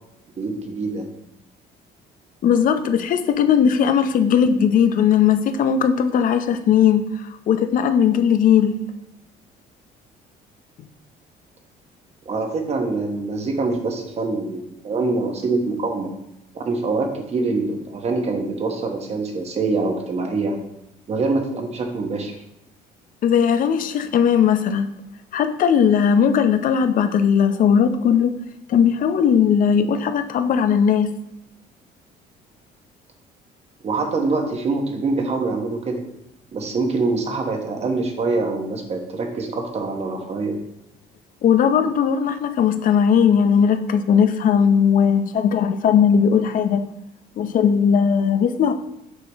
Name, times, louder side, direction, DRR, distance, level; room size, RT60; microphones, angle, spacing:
voice 1, 0.4-1.1 12.2-16.1 16.5-20.6 21.1-22.4 33.8-36.0 36.5-40.6, right 3 dB, 40° right, 3 dB, 1.2 m, -24 dB
voice 2, 2.4-7.0 7.5-8.8 23.2-24.9 25.3-28.3 28.7-31.1 41.4-46.8 47.4-48.7, left 7 dB, 55° left, 9 dB, 0.6 m, -18 dB
6.5 x 4.8 x 3.5 m, 0.85 s
cardioid pair, 110°, 17 cm